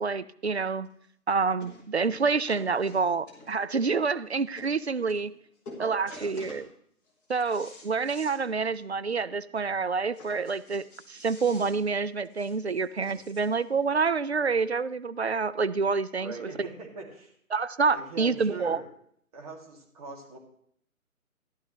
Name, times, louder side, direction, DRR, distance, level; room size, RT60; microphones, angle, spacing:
voice 1, 0.0-0.9 1.3-5.3 5.8-6.7 7.3-16.5 17.5-18.8, right 4 dB, 50° right, 15 dB, 0.5 m, -27 dB
sound 1, 0.8-0.9 1.6-1.8 2.1-3.7 4.3-4.4 4.6-4.7 5.1-5.4 5.6-6.7 7.1-8.4 8.7-8.8 9.1-9.2 10.1-13.6 14.4-14.5, left 2 dB, 15° left, 1.9 m, -48 dB
voice 2, 5.8-6.4 16.2-17.3 17.9-18.8 19.3-20.4, right 4 dB, 25° right, -2 dB, 2.5 m, -41 dB
14.5 x 11.0 x 3.1 m, 0.65 s
figure-of-eight pair, 145°, 44 cm